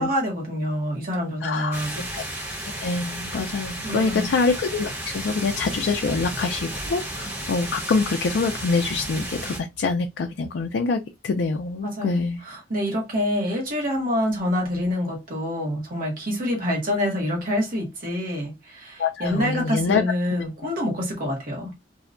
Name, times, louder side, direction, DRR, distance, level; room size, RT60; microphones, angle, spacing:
voice 1, 0.0-2.1 3.8-4.3 11.8-21.7, left 1 dB, 50° right, 1.0 m, -26 dB
voice 2, 1.4-1.8 2.1-2.2 2.8-12.4 19.0-20.0, left 4 dB, 80° left, 0.4 m, -25 dB
sound 1, 1.7-9.6, right 1 dB, 15° right, 0.9 m, -33 dB
2.7 x 2.2 x 2.4 m
head